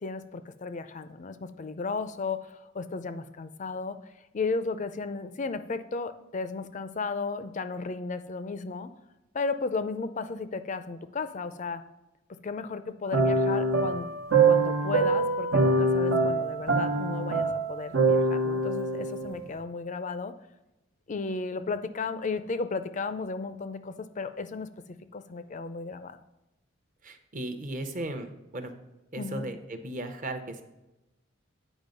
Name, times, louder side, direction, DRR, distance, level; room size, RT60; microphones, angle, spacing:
voice 1, 0.0-4.0 4.3-8.9 9.3-11.8 12.4-14.1 14.4-20.3 21.1-24.7 25.1-26.2 29.2-29.5, left 4 dB, 35° left, 11 dB, 0.5 m, -34 dB
sound 1, 13.1-19.5, right 3 dB, 75° right, 1.0 m, -24 dB
voice 2, 27.0-28.7 29.1-30.6, right 1 dB, 40° right, 7 dB, 0.8 m, -36 dB
9.0 x 5.1 x 5.3 m, 0.99 s
head